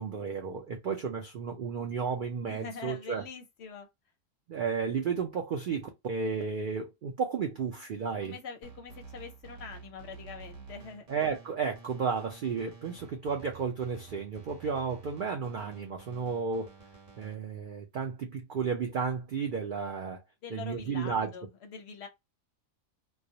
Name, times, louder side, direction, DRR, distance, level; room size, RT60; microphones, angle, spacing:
voice 1, 0.0-3.3 4.5-8.4 11.1-16.7 17.2-20.2 20.5-21.3, right 5 dB, 75° right, 0.4 m, -33 dB
voice 2, 2.5-3.9 8.2-11.1 20.4-22.1, left 5 dB, 65° left, 0.7 m, -44 dB
sound 1, 8.6-17.3, right 5 dB, 40° right, 0.8 m, -51 dB
2.3 x 2.0 x 2.6 m
omnidirectional pair, 1.4 m